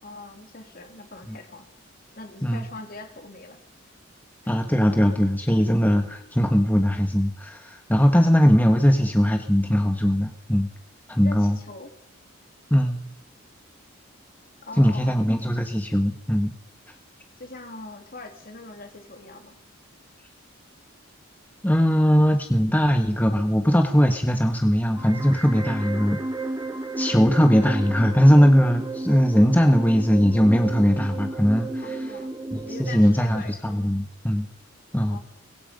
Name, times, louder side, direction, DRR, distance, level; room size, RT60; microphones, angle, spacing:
voice 1, 0.0-1.7 2.1-3.6 4.4-4.5 11.2-11.9 14.6-15.2 17.4-19.6 31.8-32.3 32.6-33.6 35.1-35.2, left 2 dB, 45° left, 5 dB, 3.3 m, -41 dB
voice 2, 4.5-10.7 11.1-11.6 12.7-13.0 14.8-16.5 21.6-26.2 27.0-32.0 32.5-34.5 34.9-35.2, equal, 10° left, 4 dB, 1.4 m, -20 dB
sound 1, 25.0-33.0, right 2 dB, 15° right, 2.2 m, -33 dB
24.5 x 22.0 x 5.3 m, 0.74 s
head